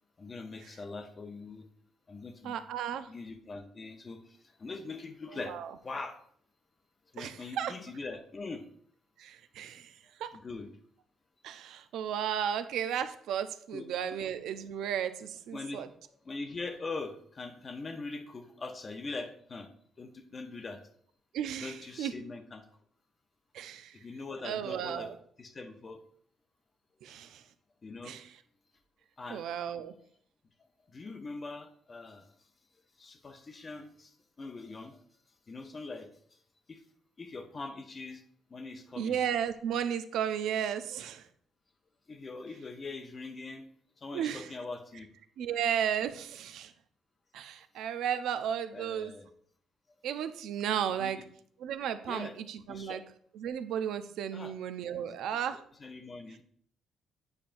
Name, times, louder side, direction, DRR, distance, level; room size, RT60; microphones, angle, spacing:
voice 1, 0.2-1.7 2.1-2.6 3.1-6.2 7.1-8.7 10.3-10.7 13.7-13.9 15.5-19.7 20.0-20.8 21.6-22.7 23.9-25.1 25.4-26.0 27.8-28.2 29.2-29.5 30.9-32.3 33.0-35.0 35.5-36.4 36.7-36.8 37.2-38.2 38.5-39.2 42.1-43.7 44.0-45.1 48.7-49.3 51.0-51.2 52.1-52.4 52.7-53.0 54.3-54.5 55.0-55.1 55.8-56.4, left 3 dB, 25° left, 6 dB, 0.6 m, -42 dB
voice 2, 2.4-3.1 5.5-5.7 7.2-7.7 9.2-9.9 10.2-10.3 11.4-15.9 21.3-22.1 23.5-23.9 24.4-25.1 27.0-27.4 28.0-28.2 29.3-29.9 39.0-41.2 44.1-44.5 45.4-46.7 47.3-49.1 50.0-51.2 51.6-53.0 53.4-55.6, right 9 dB, 80° right, 11 dB, 0.5 m, -34 dB
8.8 x 5.7 x 2.5 m, 0.63 s
cardioid pair, 150°, 0 cm